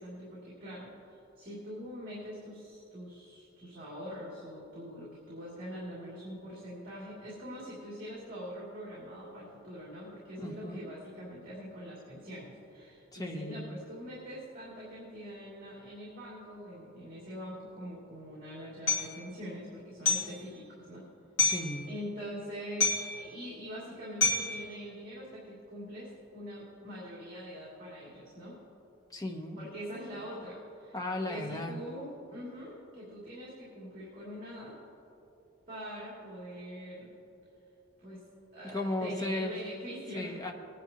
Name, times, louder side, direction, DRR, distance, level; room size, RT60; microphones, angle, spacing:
voice 1, 0.0-21.0 21.9-28.6 29.6-31.0 31.3-34.8 35.7-37.1 38.0-38.2 38.5-40.4, equal, 40° right, -7 dB, 2.7 m, -43 dB
voice 2, 10.4-10.9 13.1-13.6 21.4-21.9 29.1-29.6 30.9-31.8 38.6-39.7 40.1-40.5, left 1 dB, 15° left, 2 dB, 0.9 m, -36 dB
Hammer, 18.9-19.1 20.1-20.4 21.4-21.7 22.8-23.2 24.2-24.6, left 4 dB, 75° left, 2.6 m, -27 dB
20.5 x 10.0 x 2.9 m, 2.9 s
head